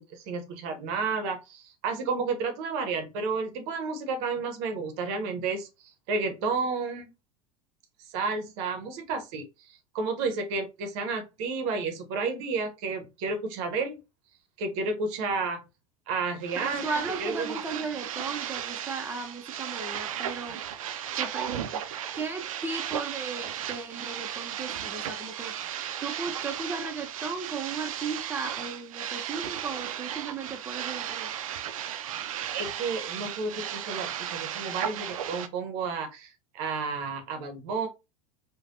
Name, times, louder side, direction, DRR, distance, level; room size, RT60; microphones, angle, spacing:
voice 1, 0.0-5.7 6.1-7.1 8.1-14.0 14.6-15.6 16.1-17.6 32.5-37.9, right 4 dB, 60° right, 6 dB, 0.8 m, -31 dB
sound 1, 16.4-35.5, right 10 dB, 80° right, 0.4 m, -35 dB
voice 2, 16.6-20.6 21.2-21.8 22.1-31.3, right 4 dB, 10° right, 3 dB, 0.7 m, -36 dB
3.2 x 2.2 x 2.5 m, 0.27 s
hypercardioid pair, 90°, 17 cm